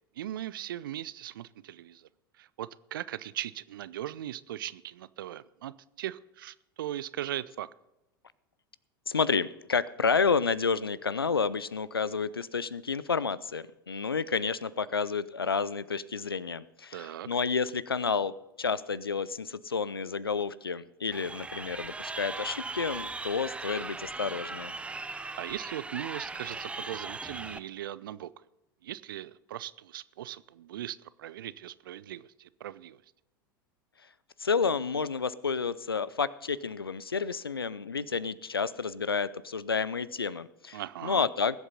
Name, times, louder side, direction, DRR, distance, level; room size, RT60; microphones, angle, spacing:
voice 1, 0.2-2.1 2.4-7.7 16.9-17.3 25.4-28.3 28.8-33.0 40.7-41.3, right 12 dB, 65° right, 18 dB, 0.5 m, -39 dB
voice 2, 9.1-18.3 18.6-24.7 34.4-41.6, left 5 dB, 85° left, 18 dB, 0.5 m, -30 dB
Crowd, 21.1-27.6, right 3 dB, 10° right, 0.6 m, -39 dB
20.5 x 8.1 x 4.0 m, 0.94 s
figure-of-eight pair, 85°, 12 cm